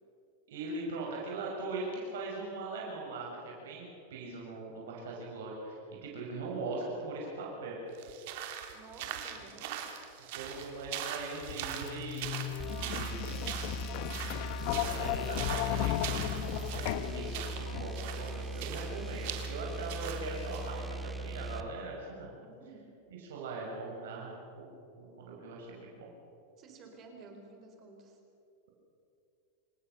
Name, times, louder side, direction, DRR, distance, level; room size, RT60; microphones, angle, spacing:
voice 1, 0.5-7.8 10.3-12.3 12.8-13.2 14.7-22.3 23.1-24.7 25.0-26.1, right 3 dB, 80° right, -2 dB, 6.3 m, -40 dB
sound 1, 7.9-20.7, right 10 dB, 55° right, 3.0 m, -42 dB
voice 2, 8.7-9.8 22.4-22.9 26.6-28.2, right 4 dB, 30° right, 4 dB, 3.9 m, -53 dB
sound 2, 11.5-18.2, left 14 dB, 50° left, 0.7 m, -36 dB
sound 3, 12.6-21.7, right 2 dB, 5° right, 0.9 m, -40 dB
28.5 x 17.0 x 6.9 m, 2.8 s
supercardioid pair, 155°, 0 cm